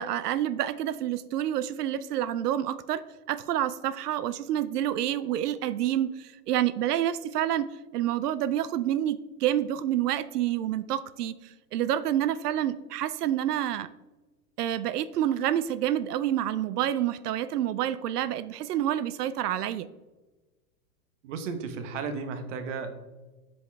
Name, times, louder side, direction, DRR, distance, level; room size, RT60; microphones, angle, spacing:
voice 1, 0.0-7.7 7.9-11.4 11.7-13.9 14.6-19.9, right 11 dB, 80° right, 15 dB, 0.7 m, -28 dB
voice 2, 21.2-22.9, right 5 dB, 50° right, 8 dB, 1.3 m, -34 dB
7.8 x 7.8 x 3.4 m, 1.2 s
supercardioid pair, 160°, 47 cm